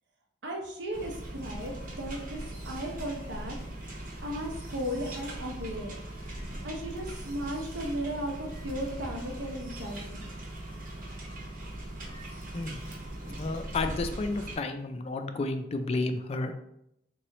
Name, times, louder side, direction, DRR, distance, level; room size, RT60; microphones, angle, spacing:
voice 1, 0.4-3.5 4.2-5.9 6.6-10.3, equal, 80° right, 1 dB, 0.8 m, -36 dB
sound 1, 0.9-14.6, right 1 dB, 50° right, 1.0 m, -40 dB
voice 2, 13.3-16.7, left 2 dB, 35° left, 7 dB, 0.3 m, -32 dB
3.8 x 3.1 x 2.9 m, 0.78 s
head